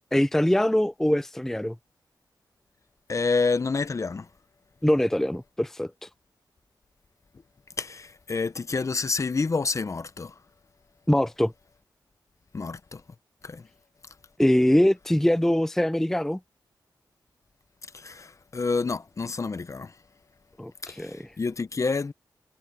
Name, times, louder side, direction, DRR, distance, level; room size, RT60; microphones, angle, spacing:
voice 1, 0.1-1.8 4.8-6.1 11.1-11.5 14.4-16.4 20.6-21.2, left 1 dB, 5° left, 0.5 m, -23 dB
voice 2, 3.1-4.3 7.8-10.3 12.5-13.0 13.4-13.7 17.9-19.9 20.8-22.1, left 4 dB, 40° left, 0.8 m, -28 dB
wide cardioid pair, 80°, 8 cm